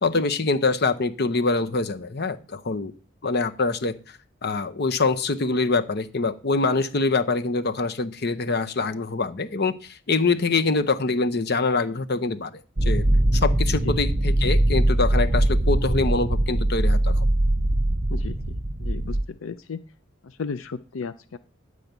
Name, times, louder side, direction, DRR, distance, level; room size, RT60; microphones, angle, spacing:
voice 1, 0.0-2.9 3.2-13.0 13.3-17.3, left 3 dB, 55° left, 10 dB, 0.9 m, -25 dB
sound 1, 12.8-19.2, right 1 dB, 40° right, 0.9 m, -21 dB
voice 2, 18.1-19.8 20.2-21.4, left 5 dB, 90° left, 13 dB, 0.5 m, -35 dB
10.5 x 4.9 x 8.1 m, 0.39 s
head